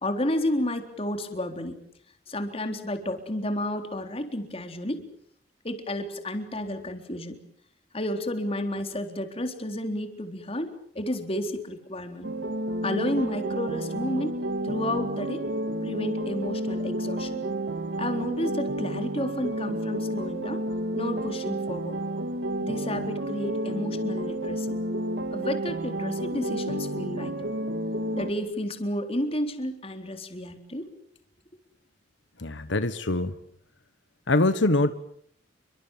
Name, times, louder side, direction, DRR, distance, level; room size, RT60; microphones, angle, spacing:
voice 1, 0.0-1.8 2.3-5.0 5.6-7.4 7.9-12.3 12.8-14.3 14.6-15.4 15.8-17.4 18.0-20.6 20.9-22.0 22.6-24.8 25.3-27.5 28.1-30.9, left 1 dB, 30° left, 6 dB, 3.8 m, -31 dB
sound 1, 12.2-28.3, right 1 dB, 70° right, 2.2 m, -31 dB
voice 2, 32.4-33.3 34.3-34.9, left 2 dB, 80° left, 12 dB, 1.4 m, -23 dB
30.0 x 24.0 x 7.4 m, 0.66 s
head